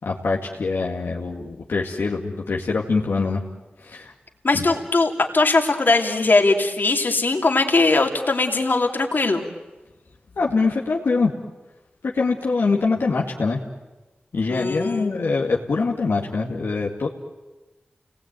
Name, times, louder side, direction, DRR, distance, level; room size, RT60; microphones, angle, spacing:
voice 1, 0.0-3.4 3.8-4.1 4.5-4.6 10.4-11.3 12.1-13.6 14.3-17.1, left 4 dB, 85° left, -2 dB, 2.3 m, -23 dB
voice 2, 4.4-9.4 14.5-15.2, left 3 dB, 60° left, 3 dB, 3.1 m, -20 dB
30.0 x 20.0 x 9.2 m, 1.1 s
cardioid pair, 50°, 4 cm